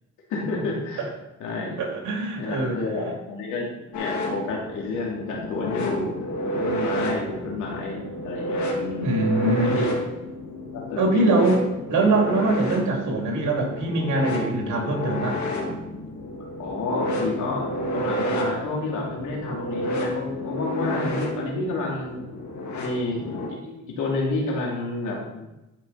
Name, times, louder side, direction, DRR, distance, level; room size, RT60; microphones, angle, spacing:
voice 1, 0.3-1.0 1.4-1.8 2.4-6.2 6.4-9.9 10.7-11.4 16.6-22.2 22.7-23.2 23.5-25.5, left 2 dB, 85° left, -2 dB, 2.8 m, -30 dB
voice 2, 1.8-2.8 9.0-9.7 11.0-15.4, right 2 dB, 75° right, 0 dB, 2.7 m, -23 dB
sound 1, 3.9-23.5, equal, 70° left, 2.2 m, -30 dB
12.0 x 5.3 x 4.1 m, 0.96 s
cardioid pair, 90°, 30 cm